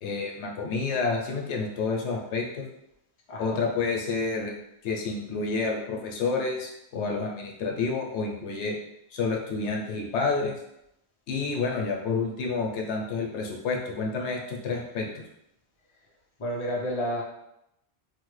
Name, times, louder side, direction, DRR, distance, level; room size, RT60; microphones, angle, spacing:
voice 1, 0.0-2.6 3.4-4.5 4.8-8.7 9.1-10.6 11.3-15.1, left 4 dB, 85° left, 0 dB, 0.9 m, -29 dB
voice 2, 3.3-3.6 16.4-17.2, equal, 35° left, -3 dB, 0.6 m, -30 dB
3.2 x 2.1 x 3.1 m, 0.81 s
omnidirectional pair, 1.1 m